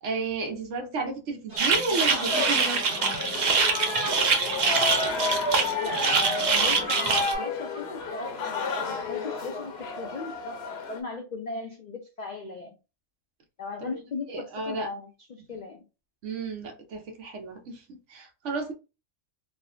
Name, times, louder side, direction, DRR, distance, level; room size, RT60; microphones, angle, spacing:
voice 1, 0.0-2.8 13.8-14.0 14.3-14.9 15.5-15.6 16.2-18.7, right 3 dB, 70° right, 1.0 m, -32 dB
sound 1, 1.5-7.2, right 1 dB, 35° right, 1.4 m, -41 dB
sound 2, 1.6-7.3, right 5 dB, 50° right, 0.5 m, -24 dB
sound 3, 2.0-11.0, left 4 dB, 60° left, 0.8 m, -31 dB
voice 2, 5.8-10.6 10.9-12.8 13.6-15.8, left 4 dB, 80° left, 0.3 m, -38 dB
3.2 x 2.1 x 2.5 m
omnidirectional pair, 1.3 m